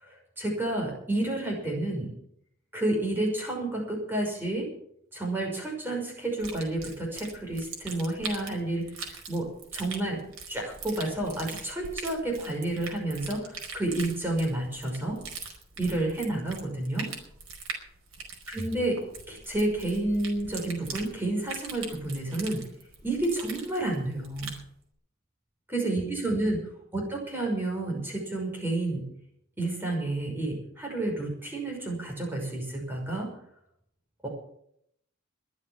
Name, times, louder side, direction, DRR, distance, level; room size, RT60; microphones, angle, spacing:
voice 1, 0.0-2.1 2.7-4.7 5.1-9.5 9.7-10.2 10.5-15.2 15.8-17.1 18.5-19.0 19.3-22.6 23.0-24.5 25.7-26.6 26.9-29.0 29.6-33.3 34.2-34.3, right 2 dB, 10° right, 0 dB, 5.7 m, -30 dB
sound 1, 6.4-24.6, right 5 dB, 85° right, 5.0 m, -42 dB
22.5 x 7.5 x 7.3 m, 0.70 s
head